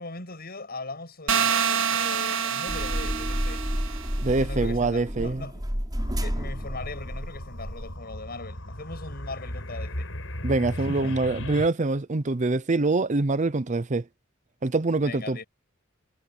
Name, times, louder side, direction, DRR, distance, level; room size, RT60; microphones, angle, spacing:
voice 1, 0.0-3.7 4.4-5.6 6.2-10.1 10.7-11.2 15.0-15.5, left 2 dB, 50° left, 7.9 m, -40 dB
sound 1, 1.3-4.2, right 7 dB, 85° right, 2.0 m, -27 dB
sound 2, 2.7-8.0, equal, 20° right, 6.4 m, -31 dB
voice 2, 4.2-5.5 10.4-14.0 14.6-15.4, right 3 dB, 40° right, 0.7 m, -25 dB
sound 3, 6.0-11.7, left 1 dB, 85° left, 5.9 m, -36 dB
head